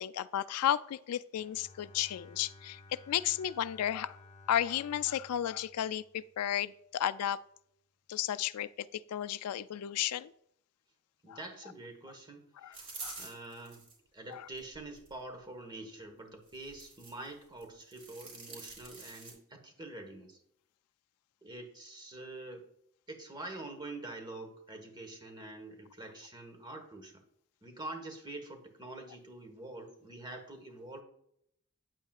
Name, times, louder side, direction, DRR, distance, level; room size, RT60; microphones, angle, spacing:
voice 1, 0.0-2.8 3.1-4.2 4.5-7.4 8.1-10.3 11.3-11.4 12.6-12.8 13.0-13.2 14.3-14.5, left 11 dB, 90° left, 15 dB, 0.4 m, -33 dB
Bowed string instrument, 1.3-6.6, left 2 dB, 35° left, 1.0 m, -56 dB
voice 2, 11.2-13.8 14.1-20.4 21.4-22.6 23.1-27.2 27.6-31.0, right 2 dB, 20° right, 4 dB, 1.3 m, -46 dB
sound 1, 12.7-13.9 14.5-15.1 16.5-17.3 17.6-19.3, right 3 dB, 35° right, 3.3 m, -47 dB
9.1 x 8.2 x 2.4 m, 0.71 s
head